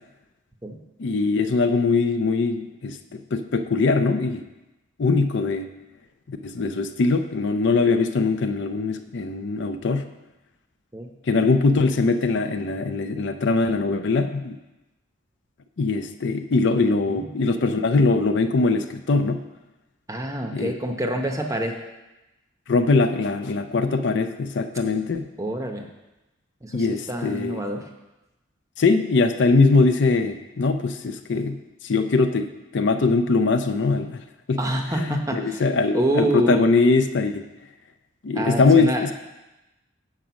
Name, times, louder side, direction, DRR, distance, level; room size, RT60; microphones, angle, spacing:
voice 1, 1.0-4.4 5.0-5.7 6.3-10.1 11.3-14.6 15.8-19.4 20.5-20.7 22.7-25.3 26.7-27.6 28.8-31.6 31.8-32.5 32.7-34.2 34.5-34.6 34.9-37.5 38.2-39.1, left 3 dB, 60° left, 8 dB, 0.5 m, -21 dB
voice 2, 20.1-21.8 25.4-25.9 26.6-27.8 34.6-35.6 35.9-36.6 38.3-39.1, right 1 dB, 15° right, 3 dB, 0.7 m, -27 dB
7.6 x 5.1 x 6.9 m, 1.0 s
head